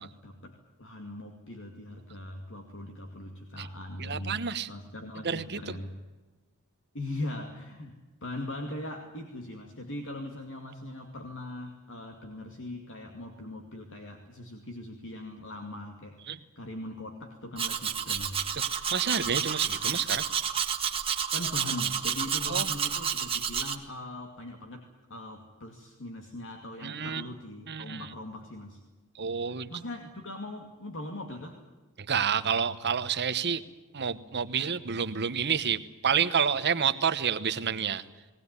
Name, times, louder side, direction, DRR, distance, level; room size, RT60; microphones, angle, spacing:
voice 1, 0.0-4.4 4.7-5.9 6.9-7.9 8.2-18.5 21.3-28.8 29.7-31.6, left 1 dB, 60° left, 3 dB, 2.4 m, -40 dB
voice 2, 4.0-4.7 5.2-5.8 16.3-16.4 18.5-18.6 18.9-20.3 22.5-22.7 26.8-27.3 27.7-28.1 29.1-29.7 32.0-33.6 33.9-38.0, right 7 dB, 50° right, 11 dB, 1.1 m, -29 dB
Domestic sounds home sounds, 17.6-23.8, right 7 dB, 25° right, 1.7 m, -30 dB
20.0 x 18.5 x 9.8 m, 1.2 s
head